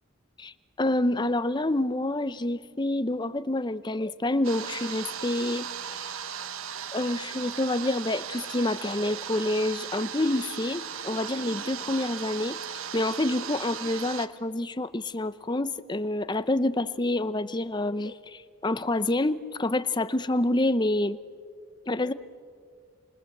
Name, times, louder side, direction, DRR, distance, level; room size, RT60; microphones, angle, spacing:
voice 1, 0.4-5.7 6.0-6.2 6.9-12.6 12.9-21.2 21.9-22.1, left 1 dB, 20° left, 13 dB, 0.7 m, -28 dB
sound 1, 4.4-14.3, right 8 dB, 85° right, 1.1 m, -37 dB
29.0 x 26.0 x 7.9 m, 2.2 s
head